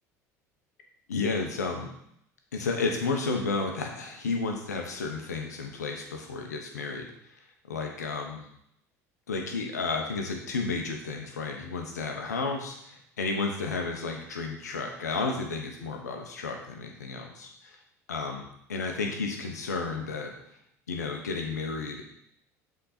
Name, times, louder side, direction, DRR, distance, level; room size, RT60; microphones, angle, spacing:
voice 1, 1.1-1.9 2.5-7.1 7.7-8.4 9.3-17.8 18.1-18.4 18.7-20.3 20.9-22.0, left 4 dB, 85° left, 3 dB, 1.1 m, -32 dB
7.6 x 4.2 x 4.2 m, 0.74 s
hypercardioid pair, 70°, 9 cm